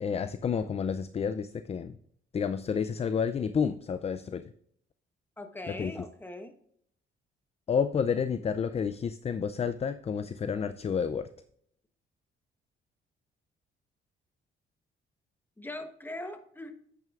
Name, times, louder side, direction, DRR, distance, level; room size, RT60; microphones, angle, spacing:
voice 1, 0.0-2.0 2.3-4.4 5.7-5.9 7.7-11.3, left 6 dB, 30° left, 11 dB, 0.4 m, -30 dB
voice 2, 5.4-6.5 15.6-16.7, left 1 dB, 10° left, 8 dB, 1.1 m, -41 dB
9.1 x 8.9 x 2.4 m, 0.66 s
cardioid pair, 90°, 20 cm